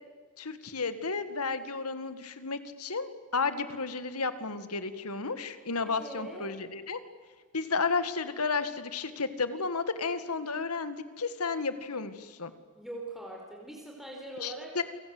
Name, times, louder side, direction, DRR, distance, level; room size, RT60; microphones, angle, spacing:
voice 1, 0.4-7.0 7.5-12.5 14.4-14.8, left 4 dB, 85° left, 11 dB, 2.1 m, -32 dB
voice 2, 5.8-6.5 12.7-14.8, right 1 dB, ahead, -1 dB, 4.8 m, -42 dB
29.0 x 25.5 x 8.0 m, 1.5 s
head